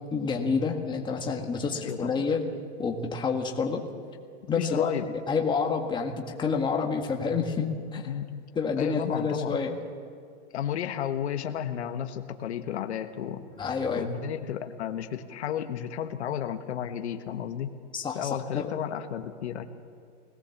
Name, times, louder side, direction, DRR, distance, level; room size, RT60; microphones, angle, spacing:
voice 1, 0.1-2.4 2.8-3.8 4.5-8.1 8.5-9.8 13.6-14.1 17.9-18.7, left 5 dB, 15° left, 1 dB, 1.8 m, -28 dB
voice 2, 1.8-2.2 4.6-5.1 8.1-8.4 8.8-9.6 10.5-13.4 14.0-17.7 18.1-19.6, left 9 dB, 80° left, 7 dB, 1.4 m, -32 dB
20.5 x 18.0 x 7.3 m, 2.3 s
hypercardioid pair, 140°, 33 cm